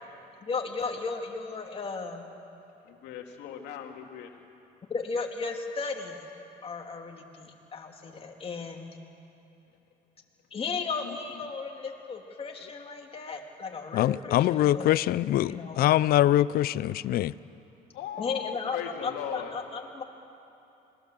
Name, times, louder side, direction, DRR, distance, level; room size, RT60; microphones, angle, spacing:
voice 1, 0.4-2.2 4.9-6.3 6.6-8.9 10.5-15.0 15.4-15.8 18.2-18.8 19.0-20.0, left 4 dB, 35° left, 2 dB, 2.8 m, -35 dB
voice 2, 2.8-4.3 17.9-19.5, left 9 dB, 85° left, 3 dB, 2.5 m, -38 dB
voice 3, 13.9-17.3, left 13 dB, 65° left, 18 dB, 0.5 m, -24 dB
26.5 x 20.5 x 7.7 m, 2.9 s
cardioid pair, 110°, 17 cm